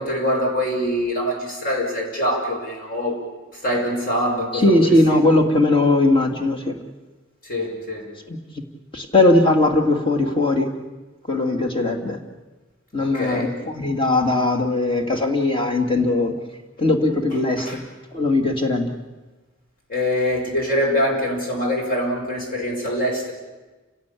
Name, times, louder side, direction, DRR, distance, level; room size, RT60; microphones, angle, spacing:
voice 1, 0.0-3.2 3.6-4.9 7.5-8.1 13.0-13.5 17.6-17.7 19.9-23.3, left 1 dB, 45° left, 1 dB, 6.1 m, -24 dB
voice 2, 4.5-6.7 8.3-8.4 8.9-10.7 11.3-12.2 12.9-16.3 16.8-17.8 18.1-18.9, left 2 dB, 25° left, 3 dB, 2.6 m, -19 dB
29.5 x 17.0 x 8.6 m, 1.2 s
head